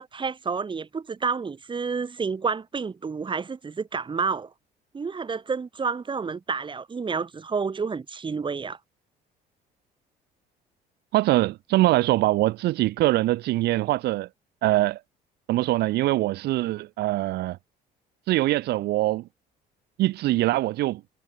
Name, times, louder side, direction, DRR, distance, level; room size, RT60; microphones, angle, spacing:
voice 1, 0.0-4.5 4.9-8.8, right 5 dB, 30° right, 5.6 m, -29 dB
voice 2, 11.1-14.3 14.6-15.0 15.5-17.6 18.3-19.2 20.0-21.0, right 17 dB, 80° right, 1.5 m, -23 dB
cardioid pair, 110°, 17 cm